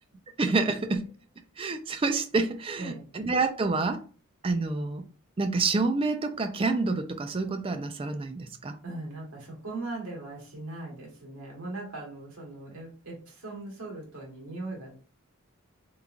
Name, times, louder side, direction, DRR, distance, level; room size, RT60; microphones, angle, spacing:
voice 1, 0.4-1.0 1.6-4.0 4.4-5.0 5.4-8.7, right 3 dB, 25° right, 0.4 m, -28 dB
voice 2, 8.8-15.0, right 2 dB, 75° right, 1.5 m, -39 dB
3.5 x 3.1 x 2.4 m
head